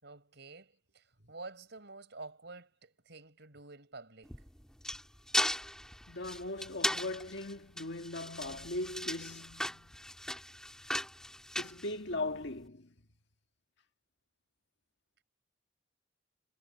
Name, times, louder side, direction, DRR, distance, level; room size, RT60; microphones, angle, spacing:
voice 1, 0.0-4.4, right 3 dB, 60° right, 5.8 m, -49 dB
sound 1, 4.2-12.5, left 1 dB, 5° left, 2.6 m, -37 dB
voice 2, 6.1-10.1 11.6-12.9, left 2 dB, 60° left, 1.8 m, -39 dB
head